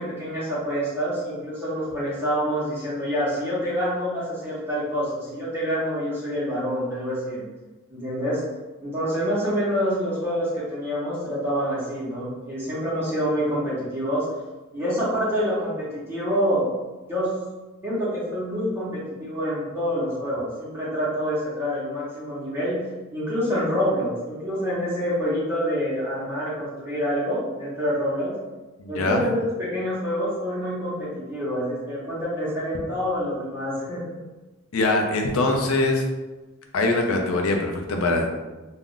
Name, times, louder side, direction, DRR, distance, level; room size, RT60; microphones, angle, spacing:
voice 1, 0.0-7.4 7.9-8.4 8.8-14.2 14.7-15.7 16.1-16.7 17.1-17.3 17.8-18.9 19.2-22.8 23.1-28.3 28.9-34.2, equal, 10° right, -9 dB, 0.7 m, -27 dB
voice 2, 28.8-29.2 34.7-36.0 36.7-38.4, left 2 dB, 70° left, 3 dB, 0.5 m, -22 dB
2.3 x 2.1 x 3.7 m, 1.2 s
head